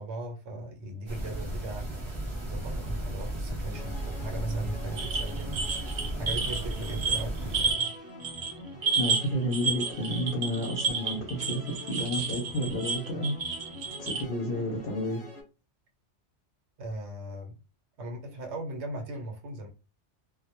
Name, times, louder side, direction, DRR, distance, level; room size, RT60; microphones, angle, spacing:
voice 1, 0.0-7.9 16.8-17.5 18.0-19.7, right 1 dB, 75° right, 0.9 m, -39 dB
sound 1, 1.1-7.7, right 1 dB, 25° right, 0.8 m, -35 dB
sound 2, 3.7-15.4, left 1 dB, 15° left, 0.9 m, -45 dB
sound 3, 5.0-8.0 8.2-8.5 8.8-14.2, right 5 dB, 55° right, 0.6 m, -31 dB
voice 2, 8.9-13.3 14.0-15.2, equal, 60° left, 0.7 m, -31 dB
2.2 x 2.0 x 2.8 m
omnidirectional pair, 1.2 m